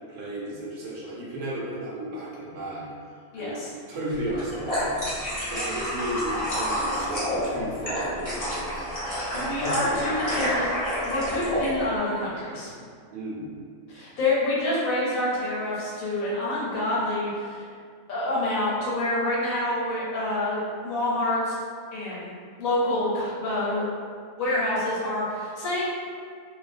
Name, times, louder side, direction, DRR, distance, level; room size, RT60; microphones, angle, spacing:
voice 1, 0.1-2.9 3.3-3.6 3.9-5.0 5.5-8.8 9.3-10.5 13.1-13.5, right 1 dB, 70° right, -5 dB, 0.9 m, -34 dB
voice 2, 3.3-3.7 9.4-10.6 11.1-12.7 13.9-17.7 18.1-21.6 21.9-22.3 22.6-23.8 24.4-25.8, left 1 dB, 80° left, -6 dB, 1.1 m, -27 dB
sound 1, 4.2-11.7, equal, 35° left, 0.7 m, -29 dB
2.4 x 2.1 x 2.4 m, 2.2 s
omnidirectional pair, 1.4 m